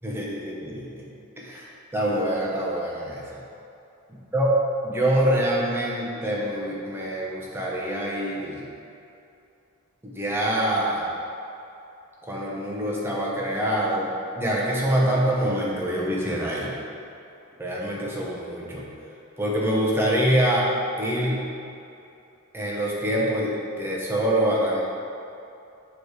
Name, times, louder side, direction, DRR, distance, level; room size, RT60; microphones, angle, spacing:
voice 1, 0.0-1.0 1.4-3.4 4.3-4.6 4.8-8.6 10.0-11.1 12.2-16.7 17.6-18.9 19.4-20.7 21.0-21.5 22.5-24.8, right 1 dB, 10° right, -5 dB, 0.9 m, -25 dB
6.9 x 3.3 x 4.9 m, 2.7 s
head